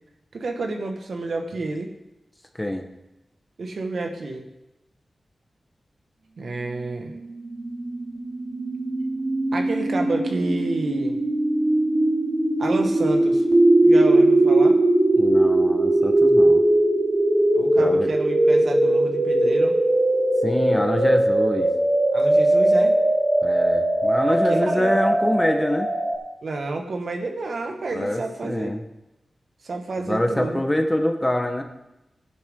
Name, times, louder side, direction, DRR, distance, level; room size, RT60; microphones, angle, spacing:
voice 1, 0.3-1.9 3.6-4.4 6.4-7.1 9.5-11.2 12.6-13.4 13.8-14.8 17.5-19.8 22.1-22.9 24.3-24.9 26.4-28.7 29.6-30.6, right 3 dB, 70° right, 3 dB, 1.6 m, -29 dB
sound 1, 7.0-26.2, right 1 dB, 40° right, 2.5 m, -20 dB
voice 2, 15.2-16.6 17.8-18.2 20.4-21.7 23.4-25.9 27.9-28.8 30.1-31.6, left 1 dB, 15° left, 4 dB, 1.2 m, -25 dB
15.0 x 10.5 x 3.8 m, 0.94 s
wide cardioid pair, 100°, 0 cm